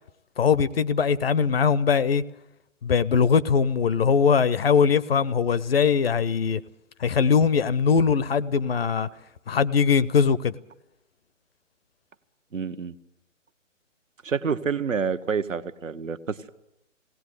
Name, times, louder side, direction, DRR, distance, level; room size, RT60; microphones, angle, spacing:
voice 1, 0.4-2.2 2.8-6.6 7.0-9.1 9.5-10.6, left 6 dB, 50° left, 0.7 m, -21 dB
voice 2, 12.5-12.9 14.2-16.5, right 6 dB, 75° right, 1.2 m, -28 dB
19.5 x 18.0 x 8.1 m
figure-of-eight pair, 140°, 39 cm